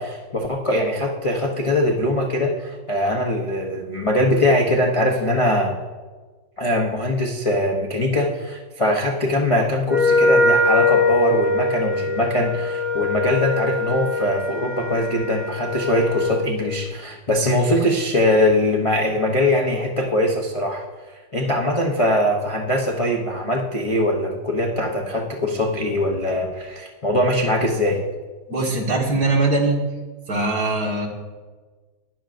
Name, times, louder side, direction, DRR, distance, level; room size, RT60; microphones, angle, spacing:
voice 1, 0.0-5.8 6.6-20.8 21.3-28.0, left 1 dB, 55° left, -2 dB, 0.3 m, -22 dB
Wind instrument woodwind instrument, 9.9-16.5, left 2 dB, 25° right, 1.8 m, -21 dB
voice 2, 28.5-29.8 30.3-31.1, right 2 dB, 55° right, -1 dB, 2.0 m, -21 dB
13.0 x 10.5 x 2.6 m, 1.4 s
omnidirectional pair, 2.1 m